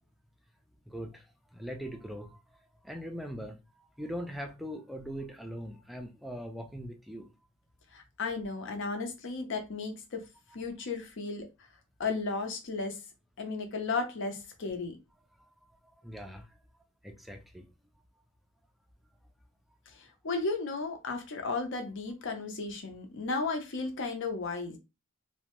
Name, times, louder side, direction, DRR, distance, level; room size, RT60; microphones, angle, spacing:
voice 1, 0.9-2.4 2.8-7.3 15.4-15.5 15.8-16.6 17.0-17.7, equal, ahead, 0.3 m, -41 dB
voice 2, 7.9-10.2 10.5-11.5 12.0-13.0 13.4-15.0 19.9-24.8, left 3 dB, 60° left, 0.6 m, -34 dB
2.6 x 2.1 x 2.9 m
head